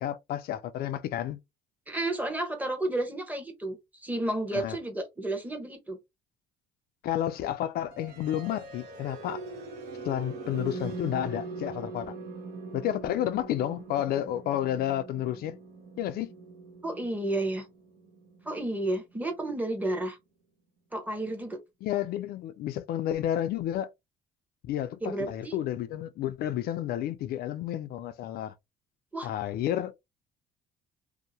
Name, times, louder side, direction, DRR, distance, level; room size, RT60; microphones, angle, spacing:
voice 1, 0.0-1.4 4.5-4.8 7.0-9.4 10.0-12.1 12.7-15.6 16.0-16.3 21.8-23.9 24.6-28.5 29.2-30.0, left 11 dB, 65° left, 0.4 m, -31 dB
voice 2, 1.9-6.0 16.8-17.7 18.4-20.2 20.9-21.6 25.0-25.6 29.1-29.3, right 1 dB, 10° right, 0.9 m, -31 dB
sound 1, 7.9-19.8, right 3 dB, 75° right, 1.1 m, -42 dB
2.7 x 2.1 x 2.8 m
cardioid pair, 110°, 17 cm